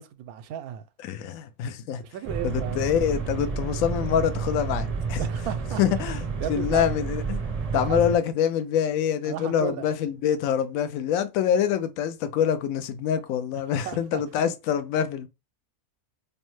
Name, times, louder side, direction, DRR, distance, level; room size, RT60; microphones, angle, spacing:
voice 1, 0.0-0.8 2.0-2.9 5.2-6.1 6.4-6.8 7.9-8.1 9.3-9.8 13.9-14.2, right 10 dB, 75° right, 1.0 m, -34 dB
voice 2, 1.0-2.0 2.4-5.2 5.8-6.2 6.5-7.4 7.7-15.3, left 9 dB, 70° left, 1.0 m, -25 dB
sound 1, 2.3-8.2, right 5 dB, 35° right, 0.6 m, -30 dB
5.3 x 2.1 x 3.0 m
omnidirectional pair, 1.6 m